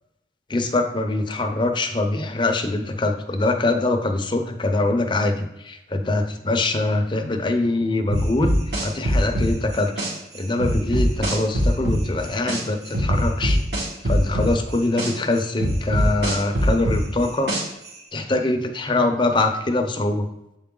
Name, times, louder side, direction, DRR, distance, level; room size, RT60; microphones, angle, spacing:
voice 1, 0.5-8.5 8.8-9.9 10.3-13.6 14.0-17.6 18.1-20.3, left 2 dB, 25° left, 6 dB, 0.6 m, -23 dB
sound 1, 8.1-10.1 10.6-12.6 12.9-15.1 15.6-17.9, equal, 70° right, 2.3 m, -21 dB
7.6 x 4.7 x 3.8 m, 0.91 s
head